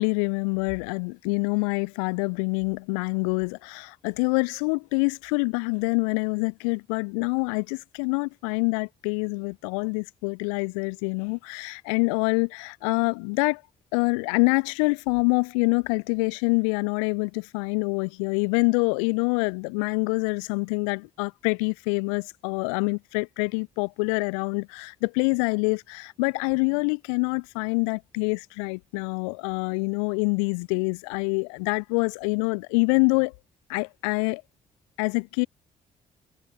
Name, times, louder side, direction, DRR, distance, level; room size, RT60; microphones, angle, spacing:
voice 1, 0.0-13.6 13.9-33.3 33.7-34.4 35.0-35.5, left 37 dB, 80° left, 2.5 m, -26 dB
hypercardioid pair, 45°, 17 cm